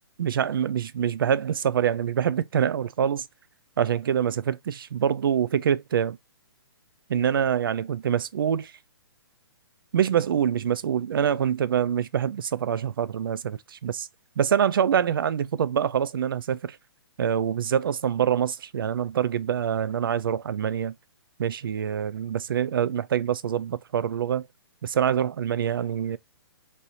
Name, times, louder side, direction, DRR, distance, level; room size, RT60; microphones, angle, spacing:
voice 1, 0.2-3.3 3.8-6.2 7.1-8.7 9.9-14.1 14.4-16.8 17.2-20.9 21.4-24.5 24.8-26.2, right 8 dB, 60° right, 0.4 m, -25 dB
3.2 x 2.7 x 4.1 m
hypercardioid pair, 170°, 13 cm